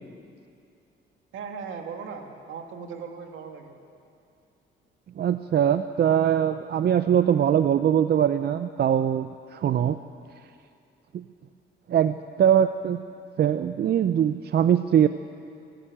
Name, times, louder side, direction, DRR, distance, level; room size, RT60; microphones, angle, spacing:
voice 1, 1.3-3.8, right 6 dB, 80° right, 3 dB, 2.3 m, -38 dB
voice 2, 5.2-10.0 11.1-11.2 11.9-13.0 13.4-15.1, right 9 dB, 55° right, 11 dB, 0.6 m, -22 dB
25.0 x 11.5 x 8.8 m, 2.5 s
cardioid pair, 90°, 20 cm